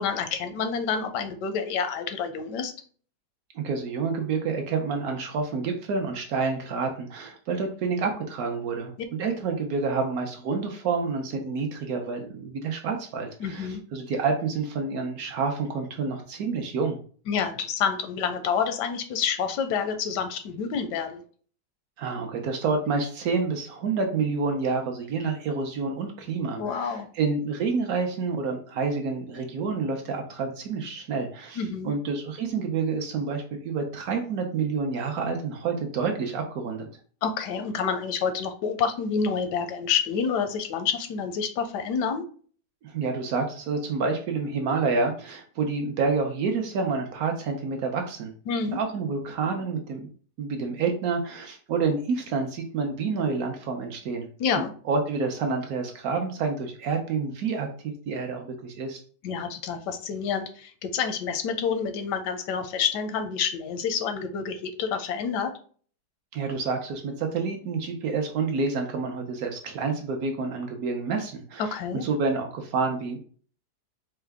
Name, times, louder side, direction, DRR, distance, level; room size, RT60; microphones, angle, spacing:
voice 1, 0.0-2.7 13.4-13.8 17.3-21.2 26.6-27.1 31.6-31.9 37.2-42.2 48.5-48.8 54.4-54.7 59.2-65.5 71.6-72.1, left 6 dB, 85° left, 8 dB, 1.2 m, -28 dB
voice 2, 3.5-17.0 22.0-36.9 42.8-48.3 48.7-50.1 50.4-54.3 54.6-59.0 66.3-73.2, right 4 dB, 65° right, 4 dB, 1.0 m, -28 dB
4.5 x 2.1 x 3.4 m, 0.43 s
omnidirectional pair, 1.8 m